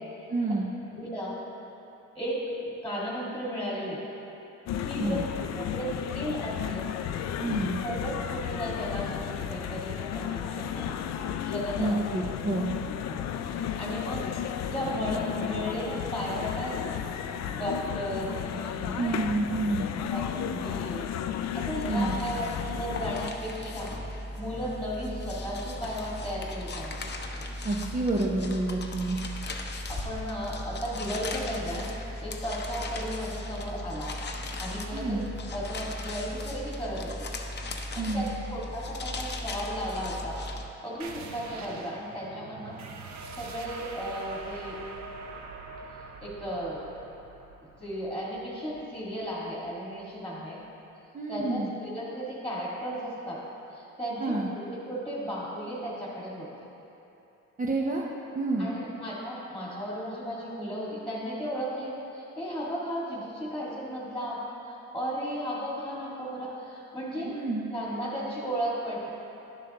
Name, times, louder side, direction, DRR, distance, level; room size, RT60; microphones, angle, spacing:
voice 1, 0.3-0.7 5.0-5.2 7.4-7.8 11.8-12.7 19.0-19.9 21.9-22.2 27.6-29.2 34.9-35.2 38.0-38.3 51.1-51.7 54.2-54.5 57.6-58.0 58.3-58.7 67.2-67.7, right 2 dB, 25° right, -4 dB, 0.7 m, -28 dB
voice 2, 0.9-1.4 2.1-4.0 4.8-6.9 7.8-10.9 11.5-12.0 12.5-12.6 13.1-14.3 14.7-17.0 17.5-19.3 20.1-21.0 21.5-23.9 24.4-26.9 29.9-31.9 32.2-35.2 35.5-37.3 37.7-40.4 40.8-42.8 43.4-44.8 46.2-46.8 47.8-50.6 51.3-53.4 53.7-56.5 58.6-64.4 64.7-67.3 67.7-69.1, equal, 5° left, -6 dB, 1.9 m, -35 dB
sound 1, 4.7-23.3, left 9 dB, 60° left, 0.4 m, -33 dB
sound 2, 20.9-40.7, left 1 dB, 35° left, 0.7 m, -37 dB
sound 3, 41.0-50.2, right 3 dB, 65° right, 0.8 m, -44 dB
11.0 x 6.9 x 2.9 m, 2.9 s
cardioid pair, 90°, 30 cm